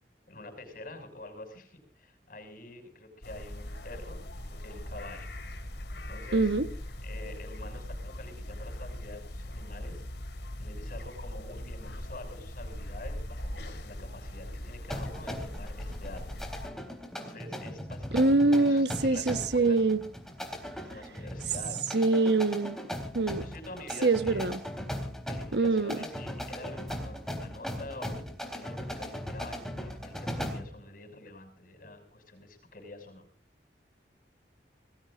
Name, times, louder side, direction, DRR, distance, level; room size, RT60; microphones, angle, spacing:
voice 1, 0.3-5.3 5.9-6.5 7.0-10.0 10.6-16.4 17.2-19.8 20.8-22.1 23.4-24.6 25.3-33.3, left 2 dB, 50° left, 6.4 m, -46 dB
sound 1, 3.2-16.7, left 1 dB, 70° left, 2.7 m, -40 dB
voice 2, 6.3-6.7 18.1-20.0 21.9-22.8 23.1-23.4 24.0-24.6 25.5-26.0, right 3 dB, 70° right, 1.2 m, -24 dB
sound 2, 14.9-30.7, equal, 5° left, 3.6 m, -38 dB
28.0 x 19.5 x 2.5 m
head